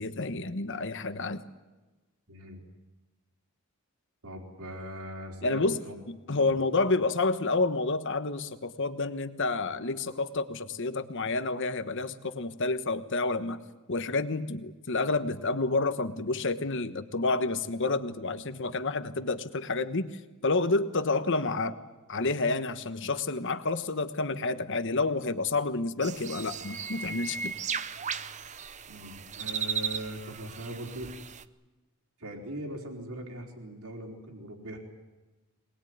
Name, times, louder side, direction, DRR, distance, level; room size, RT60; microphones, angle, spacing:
voice 1, 0.0-1.4 5.4-13.6 13.9-21.8 22.1-27.5, left 3 dB, 55° left, 11 dB, 1.3 m, -29 dB
voice 2, 2.3-2.6 4.2-6.0 6.3-6.5 28.9-31.1 32.2-34.8, right 1 dB, 70° right, 2 dB, 4.1 m, -40 dB
sound 1, 26.0-31.4, right 6 dB, 30° right, 0.7 m, -36 dB
23.0 x 20.0 x 9.5 m, 1.2 s
head